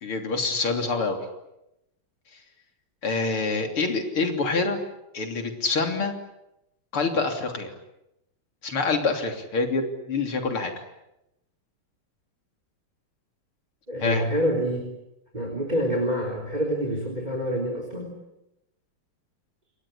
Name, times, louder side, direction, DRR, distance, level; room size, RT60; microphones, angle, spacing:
voice 1, 0.0-1.2 3.0-4.8 5.1-6.1 6.9-7.7 8.6-10.7 14.0-14.3, left 3 dB, 75° left, 5 dB, 4.1 m, -26 dB
voice 2, 13.9-14.9 15.3-18.2, equal, 20° right, 0 dB, 4.0 m, -27 dB
29.0 x 23.0 x 8.7 m, 0.89 s
omnidirectional pair, 2.4 m